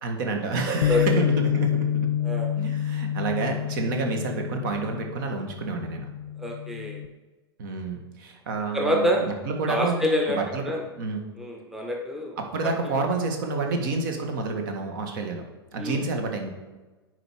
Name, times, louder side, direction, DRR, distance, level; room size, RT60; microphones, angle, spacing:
voice 1, 0.0-2.1 2.6-6.1 7.6-11.2 12.4-15.4 15.7-16.5, right 3 dB, 50° right, 3 dB, 1.7 m, -29 dB
Bass guitar, 0.8-7.1, left 10 dB, 45° left, 0.4 m, -28 dB
voice 2, 6.4-7.0 8.7-9.3 9.7-10.4 10.7-10.8 11.4-12.4 15.8-16.0, equal, 5° right, 1 dB, 0.9 m, -26 dB
9.7 x 4.7 x 4.7 m, 1.2 s
figure-of-eight pair, 100°, 13 cm